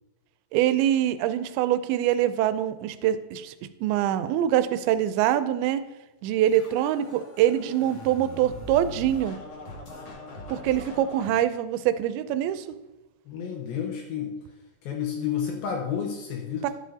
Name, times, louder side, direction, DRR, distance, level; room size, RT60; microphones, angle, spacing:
voice 1, 0.5-3.5 3.8-5.8 6.2-9.4 10.5-12.7 16.6-16.7, right 11 dB, 85° right, 12 dB, 2.4 m, -24 dB
Scratching (performance technique), 6.5-11.3, left 1 dB, 45° left, 2.2 m, -41 dB
voice 2, 13.3-14.4 14.8-16.7, left 8 dB, 75° left, 1 dB, 2.6 m, -30 dB
11.5 x 8.4 x 2.7 m, 1.0 s
omnidirectional pair, 4.5 m